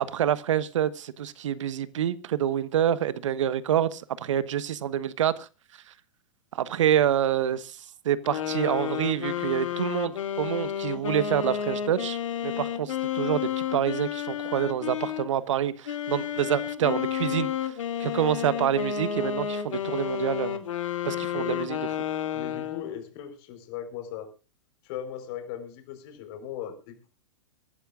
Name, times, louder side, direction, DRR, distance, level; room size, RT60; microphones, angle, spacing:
voice 1, 0.0-5.5 6.5-17.7 18.0-20.6 21.0-21.8, right 10 dB, 70° right, 1.3 m, -27 dB
sound 1, 8.2-15.3 15.9-23.0, left 9 dB, 75° left, 2.3 m, -31 dB
voice 2, 22.3-24.3 24.8-27.1, left 10 dB, 50° left, 4.4 m, -38 dB
24.5 x 12.5 x 2.5 m
hypercardioid pair, 115°, 16 cm